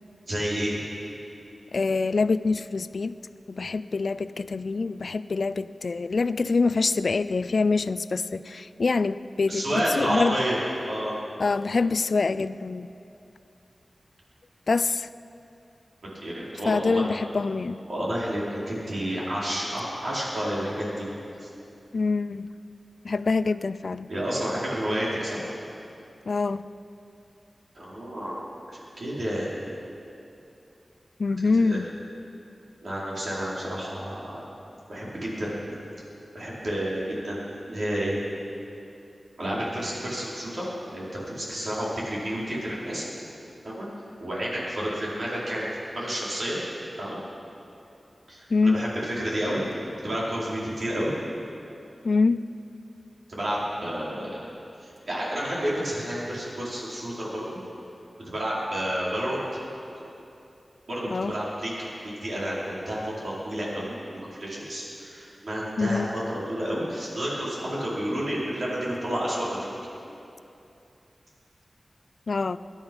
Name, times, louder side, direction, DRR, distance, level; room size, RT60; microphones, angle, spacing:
voice 1, 0.3-0.8 9.5-10.6 10.8-11.1 16.2-17.1 17.9-21.1 21.4-21.5 24.1-25.4 27.7-28.4 28.7-29.5 31.4-31.8 32.8-34.4 34.9-35.8 36.3-38.2 39.4-43.0 43.6-43.9 44.2-45.7 45.9-46.6 47.0-47.2 48.3-51.1 53.3-54.4 54.8-57.6 58.2-59.4 59.9-60.0 60.9-69.7, equal, 60° right, -7 dB, 4.7 m, -30 dB
voice 2, 1.7-3.2 3.5-10.3 11.4-13.0 14.7-15.1 16.7-17.8 21.9-22.5 23.0-24.1 26.3-26.6 31.2-31.9 48.5-48.8 52.0-52.4 61.1-61.3 65.8-66.1 72.3-72.6, left 4 dB, 65° left, 15 dB, 0.4 m, -25 dB
21.5 x 11.0 x 5.5 m, 2.7 s
wide cardioid pair, 100°, 0 cm